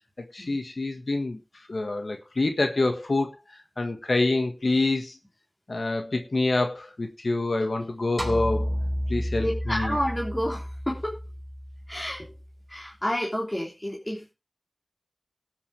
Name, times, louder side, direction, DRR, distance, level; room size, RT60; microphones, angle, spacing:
voice 1, 0.3-1.4 1.7-3.3 3.8-5.2 5.7-8.7 9.1-10.0, left 2 dB, 80° left, 1.6 m, -26 dB
sound 1, 8.2-12.6, equal, 5° right, 4.0 m, -31 dB
voice 2, 9.4-11.2 11.9-12.3 12.7-14.3, equal, 20° left, 3.4 m, -30 dB
19.0 x 8.4 x 3.4 m
wide cardioid pair, 45°, 0 cm